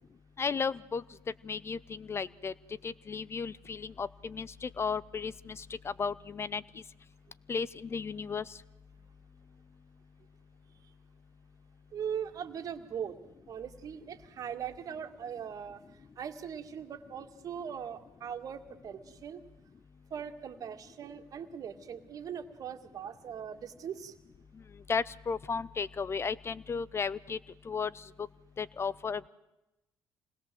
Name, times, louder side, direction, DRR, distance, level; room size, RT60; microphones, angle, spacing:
voice 1, 0.4-1.0 1.4-2.5 2.8-6.6 7.5-8.4 24.9-27.4 27.7-28.0 28.6-29.3, left 5 dB, 35° left, 21 dB, 0.8 m, -34 dB
voice 2, 11.9-13.2 13.5-15.8 16.2-19.4 20.1-24.1, right 8 dB, 55° right, 7 dB, 2.2 m, -40 dB
26.5 x 20.0 x 7.8 m, 0.96 s
hypercardioid pair, 55°, 7 cm